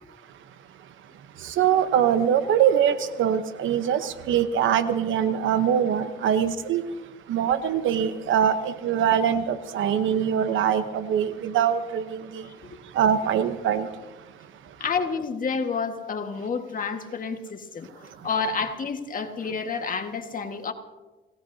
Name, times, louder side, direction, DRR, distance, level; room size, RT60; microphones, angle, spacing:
voice 1, 1.4-6.8 7.3-12.4 12.9-13.9, right 9 dB, 80° right, 1.0 m, -23 dB
voice 2, 14.8-20.7, left 5 dB, 45° left, 1.7 m, -29 dB
28.5 x 17.0 x 2.8 m
cardioid pair, 90°, 20 cm